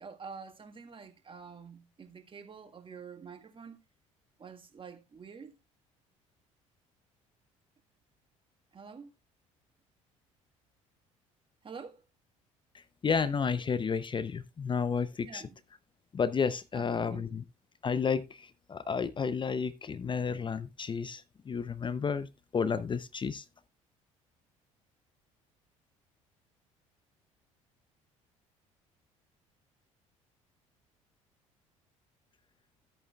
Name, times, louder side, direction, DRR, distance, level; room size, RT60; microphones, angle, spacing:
voice 1, 0.0-3.8 4.4-5.6 8.7-9.1 11.6-12.0 15.2-15.6 16.7-17.4, right 5 dB, 30° right, 1.6 m, -47 dB
voice 2, 12.7-15.5 16.1-17.4 17.8-23.4, left 6 dB, 30° left, 0.6 m, -32 dB
13.5 x 8.7 x 2.3 m
hypercardioid pair, 55°, 17 cm